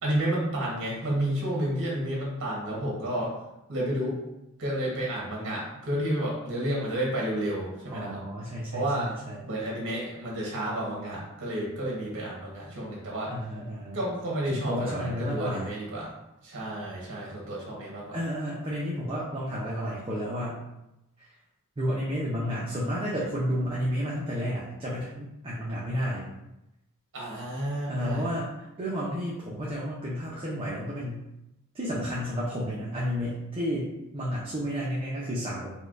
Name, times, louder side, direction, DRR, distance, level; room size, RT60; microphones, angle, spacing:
voice 1, 0.0-3.3 3.7-4.2 4.6-8.2 8.7-9.1 9.5-13.3 13.9-16.1 16.4-18.2 27.1-28.2, right 1 dB, 60° right, -4 dB, 1.0 m, -31 dB
voice 2, 7.9-9.4 13.3-14.0 14.5-15.7 18.1-20.6 21.2-21.3 21.8-26.3 27.9-28.5 28.8-31.2 31.7-35.7, equal, 25° right, -6 dB, 0.5 m, -31 dB
4.2 x 2.2 x 2.4 m, 0.91 s
head